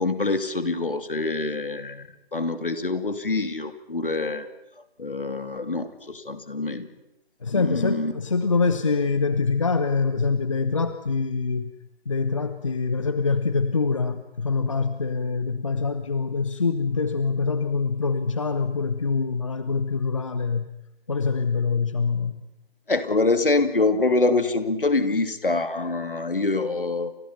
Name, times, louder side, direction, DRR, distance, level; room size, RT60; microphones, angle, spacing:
voice 1, 0.0-4.5 5.0-6.9 7.5-8.1 22.9-27.1, left 3 dB, 60° left, 9 dB, 2.7 m, -25 dB
voice 2, 7.4-11.7 12.1-20.7 21.1-22.4, left 4 dB, 30° left, 11 dB, 1.0 m, -25 dB
30.0 x 27.0 x 5.8 m, 0.88 s
figure-of-eight pair, 155°, 31 cm